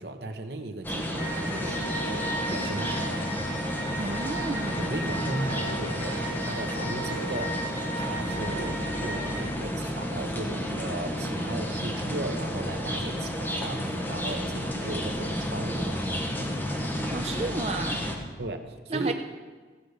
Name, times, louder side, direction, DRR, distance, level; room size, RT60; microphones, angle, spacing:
voice 1, 0.0-3.3 4.8-7.7 8.0-16.0 18.4-19.1, right 2 dB, 70° right, 6 dB, 1.1 m, -36 dB
sound 1, 0.8-18.2, equal, 10° left, 1.2 m, -31 dB
sound 2, 1.2-9.5, right 1 dB, 55° left, 3.2 m, -36 dB
voice 2, 4.0-4.9 17.1-18.1 18.9-19.1, right 3 dB, 35° right, 4 dB, 0.5 m, -32 dB
15.0 x 5.2 x 8.0 m, 1.4 s
head